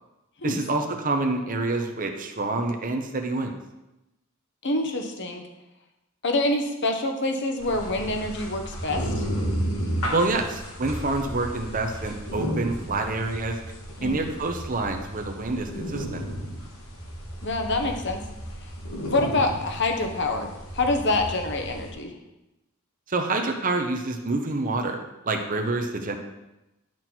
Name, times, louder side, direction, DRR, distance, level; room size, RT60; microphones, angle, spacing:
voice 1, 0.4-3.6 10.1-13.6 14.0-16.2 23.1-25.0 25.2-26.2, right 2 dB, 40° right, 4 dB, 0.9 m, -27 dB
voice 2, 4.6-5.4 6.2-9.2 14.0-14.2 17.4-18.2 19.0-22.1, left 2 dB, 60° left, 4 dB, 1.3 m, -26 dB
sound 1, 7.6-21.9, equal, 85° left, 2.6 m, -33 dB
11.0 x 6.1 x 4.5 m, 0.96 s
head